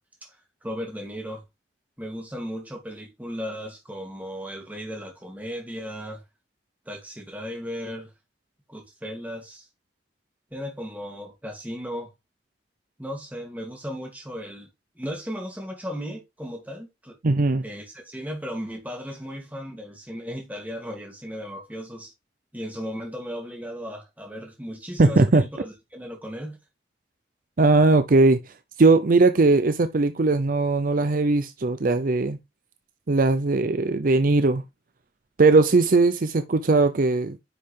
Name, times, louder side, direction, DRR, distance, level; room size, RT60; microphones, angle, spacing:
voice 1, 0.6-1.4 2.0-6.2 6.9-8.1 8.7-9.7 10.5-12.1 13.0-14.7 14.9-17.1 17.6-22.1 22.5-26.6, equal, 10° right, 2.6 m, -36 dB
voice 2, 17.2-17.6 25.0-25.4 27.6-28.5 28.8-32.4 33.1-34.6 35.4-37.4, right 3 dB, 50° right, 0.6 m, -19 dB
10.0 x 5.3 x 3.4 m
head